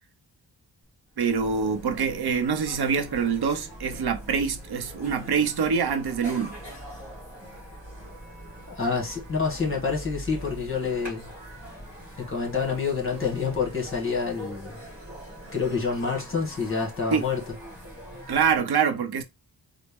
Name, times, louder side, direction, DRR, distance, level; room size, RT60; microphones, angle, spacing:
sound 1, 0.9-1.0 1.1-18.6, equal, 5° right, 2.2 m, -42 dB
voice 1, 1.2-6.6 17.1-17.2 18.3-19.2, right 6 dB, 75° right, 0.6 m, -25 dB
voice 2, 8.7-11.3 12.2-14.8 15.5-17.4, left 5 dB, 30° left, 1.1 m, -27 dB
4.1 x 2.0 x 3.4 m
wide cardioid pair, 180°, 39 cm